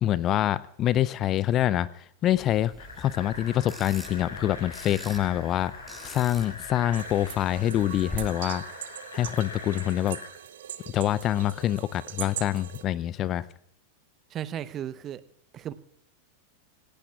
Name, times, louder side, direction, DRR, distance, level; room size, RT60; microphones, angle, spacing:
voice 1, 0.0-5.7 6.0-8.6 9.1-10.2 10.9-13.4, left 12 dB, 30° left, 20 dB, 0.5 m, -26 dB
sound 1, 2.3-8.1, left 1 dB, 5° left, 6.7 m, -45 dB
sound 2, 2.8-10.3, left 3 dB, 70° left, 5.8 m, -42 dB
sound 3, 6.9-12.8, right 10 dB, 60° right, 1.0 m, -41 dB
voice 2, 14.3-15.2 15.5-15.7, right 10 dB, 30° right, 15 dB, 0.9 m, -35 dB
27.0 x 17.0 x 2.4 m, 0.68 s
figure-of-eight pair, 90°, 0 cm